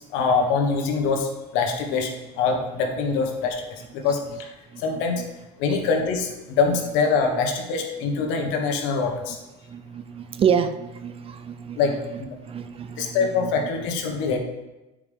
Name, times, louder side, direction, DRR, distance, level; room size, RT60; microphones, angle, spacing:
voice 1, 0.1-2.1 2.4-4.5 4.8-5.2 5.6-9.4 11.8-11.9 13.0-14.4, left 5 dB, 70° left, 2 dB, 1.4 m, -24 dB
voice 2, 4.7-5.3 5.7-5.8 8.2-8.5 9.7-12.0 12.5-13.7, right 7 dB, 30° right, 10 dB, 0.5 m, -29 dB
9.2 x 4.9 x 3.6 m, 1.0 s
cardioid pair, 125°, 21 cm